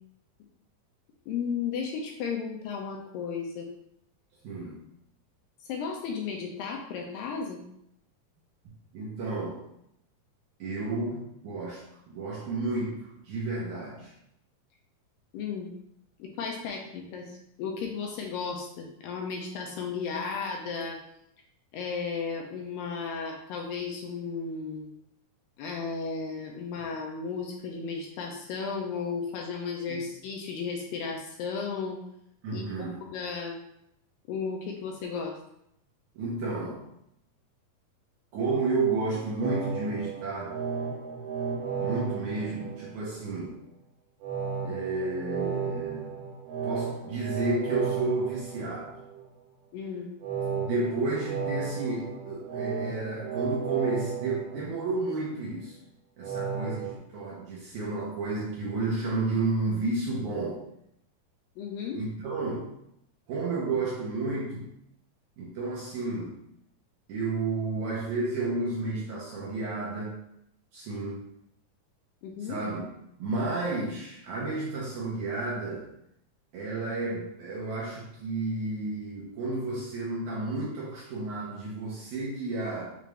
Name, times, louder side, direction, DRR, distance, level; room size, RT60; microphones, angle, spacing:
voice 1, 1.3-3.7 5.7-7.6 15.3-15.7 16.2-21.0 21.7-24.9 25.6-32.0 32.5-33.6 34.3-35.4 49.7-50.1 61.6-62.0 72.2-72.6, left 5 dB, 80° left, 1 dB, 2.1 m, -34 dB
voice 2, 4.4-4.8 8.9-9.6 10.6-14.1 29.9-30.0 32.4-33.0 36.2-36.8 38.3-40.6 41.8-43.6 44.6-46.1 46.6-49.0 50.6-55.8 56.2-60.6 61.9-62.8 63.3-64.7 65.4-66.4 67.1-70.2 70.7-71.2 72.4-72.9 73.2-75.8 76.5-82.9, right 3 dB, 75° right, -5 dB, 1.9 m, -31 dB
sound 1, 39.4-43.3 44.2-49.3 50.2-55.3 56.2-57.0, right 6 dB, 90° right, 2.8 m, -34 dB
6.7 x 2.5 x 3.2 m, 0.76 s
omnidirectional pair, 4.3 m